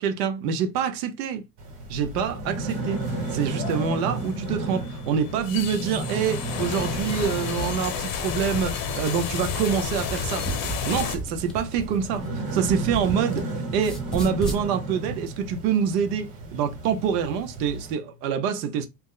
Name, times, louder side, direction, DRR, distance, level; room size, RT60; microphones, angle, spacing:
voice 1, 0.0-1.4 1.9-3.0 3.3-10.5 10.9-13.4 13.7-18.9, right 7 dB, 80° right, 0.7 m, -26 dB
sound 1, 1.6-17.9, right 2 dB, 50° right, 1.8 m, -34 dB
sound 2, 2.7-11.2, left 7 dB, 45° left, 0.8 m, -32 dB
sound 3, 10.0-13.4 13.7-14.6, right 1 dB, ahead, 0.5 m, -34 dB
2.9 x 2.0 x 3.6 m
supercardioid pair, 130°, 47 cm